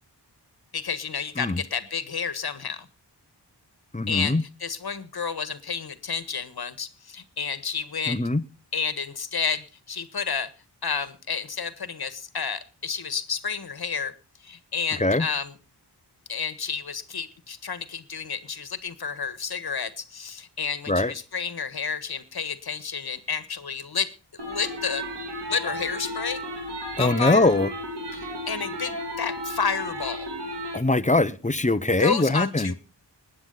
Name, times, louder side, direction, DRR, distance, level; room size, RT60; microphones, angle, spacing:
voice 1, 0.7-2.9 4.1-8.2 8.7-10.5 10.8-14.1 14.4-15.5 16.3-25.0 25.5-26.4 27.0-27.5 28.1-30.3 32.0-32.7, left 6 dB, 60° left, 13 dB, 1.6 m, -30 dB
voice 2, 3.9-4.4 8.1-8.4 15.0-15.3 20.9-21.1 27.0-27.7 30.7-32.7, left 2 dB, 15° left, 15 dB, 1.0 m, -22 dB
sound 1, 24.4-30.8, equal, 75° right, 3.3 m, -34 dB
20.5 x 9.7 x 4.0 m, 0.32 s
wide cardioid pair, 65°, 42 cm